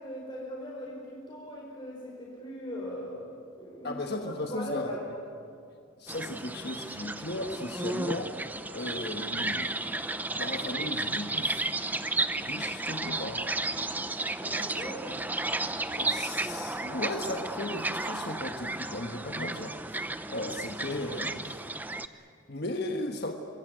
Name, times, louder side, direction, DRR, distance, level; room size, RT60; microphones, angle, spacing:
voice 1, 0.0-4.0 4.4-5.2 14.4-15.1, left 1 dB, 25° left, -4 dB, 5.1 m, -39 dB
voice 2, 3.8-4.9 6.0-9.7 10.3-11.7 12.4-13.4 16.0-20.0 20.3-21.6 22.5-23.3, left 1 dB, 50° left, 3 dB, 1.5 m, -36 dB
sound 1, 6.1-22.1, right 2 dB, 10° right, 0.6 m, -33 dB
25.5 x 21.5 x 9.3 m, 2.3 s
head